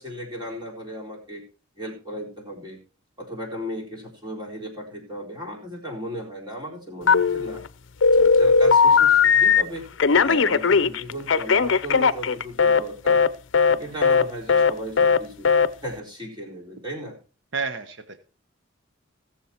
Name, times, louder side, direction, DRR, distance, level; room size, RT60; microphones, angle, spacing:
voice 1, 0.0-1.4 1.8-2.8 3.2-7.6 8.0-9.9 10.2-13.2 13.8-15.5 15.8-17.2, equal, 20° right, -1 dB, 4.2 m, -35 dB
Telephone, 7.1-7.7 8.0-9.6 10.0-12.8 13.1-13.3 13.5-13.8 14.0-14.2 14.5-14.7 15.0-15.2 15.4-15.7, left 5 dB, 65° left, 0.6 m, -18 dB
voice 2, 17.5-18.2, right 4 dB, 60° right, 9 dB, 1.1 m, -31 dB
18.0 x 7.2 x 4.4 m, 0.36 s
head